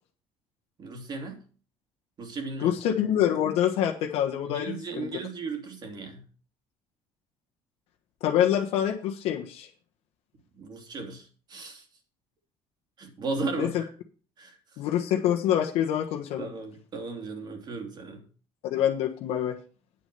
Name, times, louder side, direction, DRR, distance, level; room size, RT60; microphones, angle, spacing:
voice 1, 0.8-1.4 2.2-2.8 4.4-6.2 10.5-11.8 13.0-13.9 14.4-14.6 16.4-18.2, right 3 dB, 45° right, 2.9 m, -36 dB
voice 2, 2.6-5.1 8.2-9.7 13.6-13.8 14.8-16.4 18.6-19.6, left 10 dB, 80° left, 1.3 m, -26 dB
9.5 x 6.5 x 6.9 m
cardioid pair, 120°, 10 cm